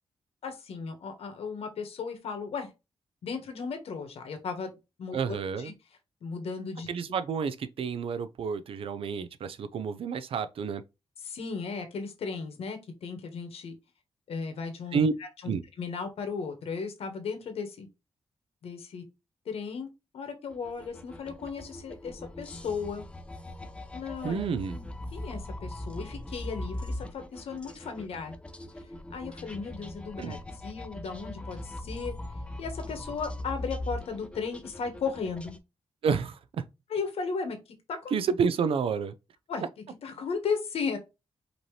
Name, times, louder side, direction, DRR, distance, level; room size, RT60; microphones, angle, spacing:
voice 1, 0.4-2.7 3.2-4.7 5.0-5.7 6.2-6.9 11.2-13.7 14.3-15.1 15.4-15.5 15.8-17.9 18.6-19.0 19.4-19.9 20.1-23.0 23.9-24.4 25.1-28.3 28.8-30.4 30.6-32.1 32.6-35.6 36.9-37.6 38.0-38.1 39.5-39.6 40.0-41.0, left 5 dB, 85° left, 1.2 m, -35 dB
voice 2, 5.1-5.7 6.9-10.8 14.9-15.1 15.4-15.6 24.2-24.8 30.2-30.4 36.0-36.6 38.1-39.2, right 6 dB, 70° right, 0.5 m, -29 dB
sound 1, 20.5-35.6, left 1 dB, 10° left, 0.5 m, -40 dB
5.1 x 2.9 x 3.2 m
wide cardioid pair, 145°, 10 cm